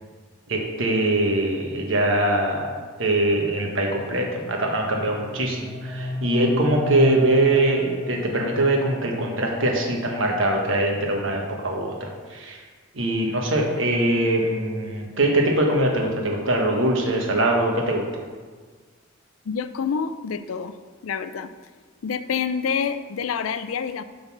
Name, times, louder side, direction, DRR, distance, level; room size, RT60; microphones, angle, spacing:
voice 1, 0.5-12.6 12.9-18.1, right 1 dB, 70° right, 1 dB, 1.3 m, -22 dB
sound 1, 5.1-8.9, left 1 dB, ahead, 1.3 m, -31 dB
voice 2, 19.5-20.7 21.0-21.5 22.0-24.0, left 6 dB, 90° left, 12 dB, 0.4 m, -27 dB
7.5 x 4.0 x 6.0 m, 1.5 s
head